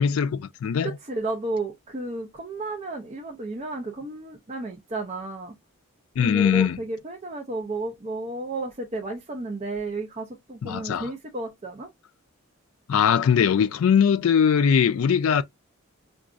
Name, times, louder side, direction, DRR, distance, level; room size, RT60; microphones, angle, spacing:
voice 1, 0.0-0.9 6.2-6.8 10.6-11.1 12.9-15.4, left 7 dB, 80° left, 0.3 m, -21 dB
voice 2, 0.8-5.5 6.2-11.9, right 2 dB, 30° right, 0.6 m, -32 dB
4.8 x 2.4 x 2.4 m
head